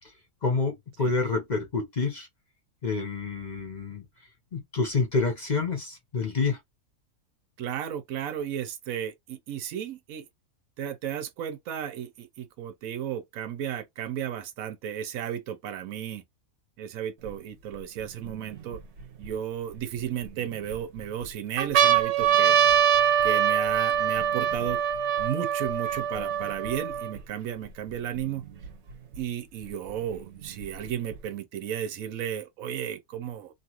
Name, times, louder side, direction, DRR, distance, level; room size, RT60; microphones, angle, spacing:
voice 1, 0.4-2.3 2.8-4.0 4.5-6.6, left 4 dB, 40° left, 0.7 m, -28 dB
voice 2, 7.6-10.3 10.8-16.2 16.8-18.8 19.2-22.5 23.2-24.8 25.2-28.4 29.2-33.5, right 10 dB, 85° right, 1.1 m, -34 dB
sound 1, 17.3-17.4 18.0-19.3 20.0-20.8 21.2-21.3 21.6-27.2 27.9-28.0 28.2-29.2 30.1-31.2, right 9 dB, 60° right, 0.9 m, -24 dB
2.9 x 2.5 x 2.9 m
omnidirectional pair, 1.4 m